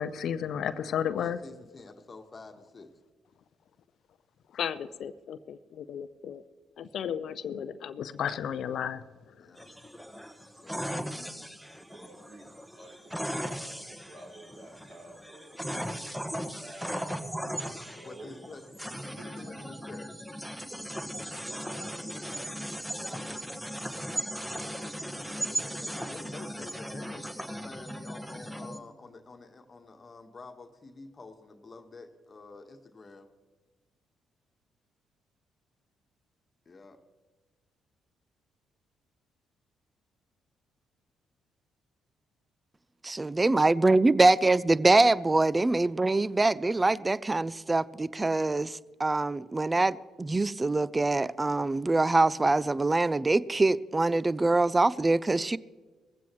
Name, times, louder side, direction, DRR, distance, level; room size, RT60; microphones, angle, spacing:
voice 1, 0.0-1.4 4.5-6.4 6.8-9.0 9.4-9.5, left 8 dB, 60° left, 14 dB, 0.5 m, -33 dB
voice 2, 1.2-2.9 9.4-9.7 10.4-11.5 18.0-18.8 19.3-20.1 25.4-33.3 36.6-37.0, left 3 dB, 35° left, 5 dB, 1.4 m, -48 dB
sound 1, 9.6-28.8, equal, 5° right, 1.4 m, -37 dB
voice 3, 11.9-18.4 19.1-19.7 21.5-22.9, right 1 dB, 60° right, -3 dB, 5.1 m, -51 dB
voice 4, 43.0-55.6, right 2 dB, 25° right, 20 dB, 0.5 m, -24 dB
20.0 x 15.0 x 3.1 m, 1.3 s
hypercardioid pair, 45°, 0 cm